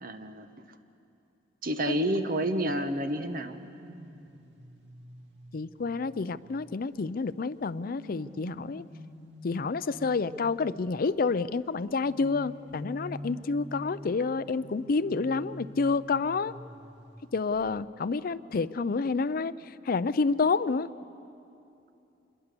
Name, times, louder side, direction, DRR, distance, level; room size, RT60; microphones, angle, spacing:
voice 1, 0.0-0.6 1.6-3.6, right 1 dB, 50° right, 8 dB, 1.2 m, -29 dB
sound 1, 3.5-7.1 7.7-11.0 12.0-17.2 17.5-17.8, equal, 75° right, 2.1 m, -47 dB
voice 2, 5.5-8.8 9.4-16.5 17.3-20.9, left 4 dB, 55° left, 15 dB, 0.5 m, -29 dB
26.5 x 21.5 x 6.8 m, 2.8 s
head